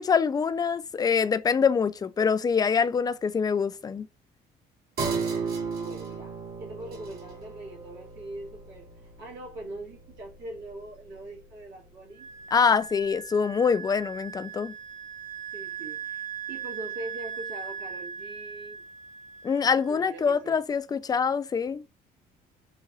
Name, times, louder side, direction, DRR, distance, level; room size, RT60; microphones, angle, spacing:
voice 1, 0.0-4.1 12.5-14.7 19.4-21.8, left 6 dB, 25° left, 0.3 m, -25 dB
sound 1, 5.0-12.0 12.4-12.5, right 5 dB, 65° right, 2.2 m, -36 dB
voice 2, 5.7-12.3 15.5-18.8 19.9-20.6, right 2 dB, 85° right, 2.1 m, -42 dB
Wind instrument woodwind instrument, 12.2-20.4, right 7 dB, 45° right, 0.6 m, -39 dB
3.8 x 2.9 x 2.7 m
cardioid pair, 110°, 17 cm